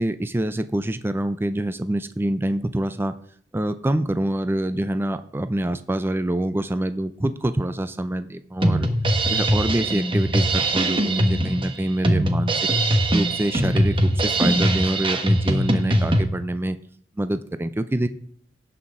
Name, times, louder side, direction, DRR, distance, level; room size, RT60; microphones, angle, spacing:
voice 1, 0.0-3.1 3.5-8.9 9.3-12.5 13.1-16.8 17.2-18.1, right 1 dB, 15° right, 12 dB, 0.4 m, -25 dB
Drum kit, 8.6-16.2, right 1 dB, 30° right, 1.1 m, -21 dB
17.0 x 5.9 x 3.7 m, 0.62 s
head